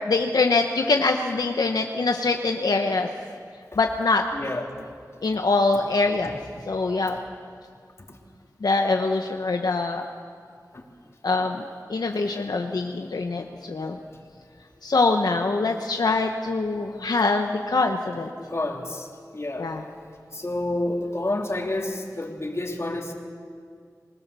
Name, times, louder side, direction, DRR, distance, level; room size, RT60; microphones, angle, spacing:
voice 1, 0.1-3.1 3.8-4.2 5.2-6.4 6.7-7.2 8.6-10.1 11.2-11.6 11.9-14.0 14.8-18.3 19.6-19.8, left 3 dB, 85° left, 3 dB, 1.0 m, -23 dB
voice 2, 4.3-4.7 8.1-8.2 10.7-10.8 18.4-19.7 20.3-23.1, left 1 dB, 45° left, 1 dB, 3.3 m, -29 dB
26.0 x 20.0 x 6.9 m, 2.2 s
wide cardioid pair, 55°, 7 cm